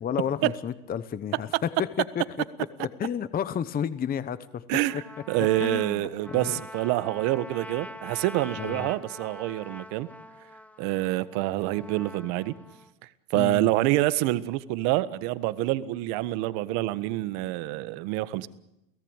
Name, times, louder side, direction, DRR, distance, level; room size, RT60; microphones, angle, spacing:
voice 1, 0.0-2.2 2.8-4.6 4.9-5.0 5.4-6.6 8.6-8.9 13.3-13.7, left 8 dB, 20° left, 14 dB, 0.9 m, -31 dB
voice 2, 4.7-5.0 5.3-10.1 10.8-12.5 13.3-18.5, right 16 dB, 55° right, 14 dB, 1.6 m, -27 dB
Trumpet, 4.8-12.9, left 1 dB, 5° left, 1.3 m, -44 dB
29.5 x 18.0 x 9.1 m, 0.89 s
supercardioid pair, 140°, 45 cm